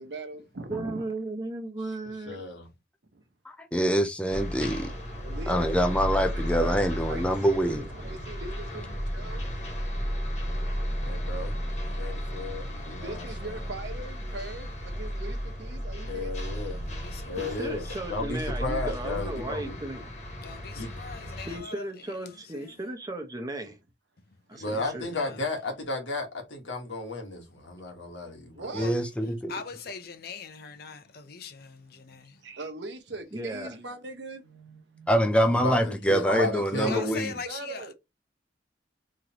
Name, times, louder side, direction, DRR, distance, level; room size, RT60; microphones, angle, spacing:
voice 1, 0.0-1.1 3.1-3.2 5.2-5.7 6.1-9.6 13.0-16.5 28.5-28.9 32.4-35.1 36.3-37.9, right 3 dB, 70° right, 1.0 m, -40 dB
voice 2, 0.7-2.4 17.4-20.0 21.4-23.8 24.5-25.1 33.3-33.8, right 2 dB, 20° right, 0.8 m, -35 dB
voice 3, 2.3-2.7 11.0-11.6 11.8-13.7 16.1-16.8 17.2-19.7 20.7-20.9 24.6-28.8 35.5-37.2, left 2 dB, 85° left, 1.5 m, -34 dB
voice 4, 3.5-4.9 5.5-7.8 28.7-29.5 35.1-37.3, equal, 5° left, 0.4 m, -25 dB
sound 1, 4.3-21.6, equal, 40° left, 1.4 m, -34 dB
voice 5, 17.0-17.6 20.4-21.7 24.5-24.7 25.1-25.3 28.8-28.9 29.5-32.3 36.9-37.9, left 5 dB, 55° left, 0.6 m, -41 dB
3.8 x 3.2 x 2.9 m
head